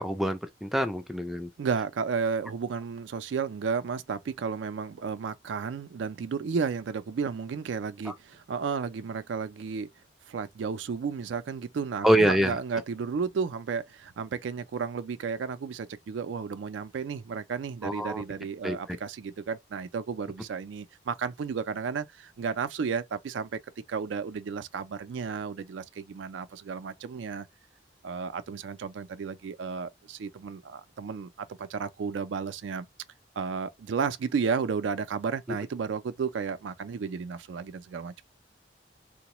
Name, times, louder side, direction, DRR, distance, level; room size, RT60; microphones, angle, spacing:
voice 1, 0.0-1.5 8.1-8.2 12.0-12.6 17.8-18.2 18.6-18.8, equal, ahead, 0.3 m, -25 dB
voice 2, 1.6-9.9 10.3-23.6 23.9-27.5 28.0-32.9 33.4-38.2, right 5 dB, 85° right, 0.4 m, -33 dB
3.8 x 2.1 x 2.9 m
head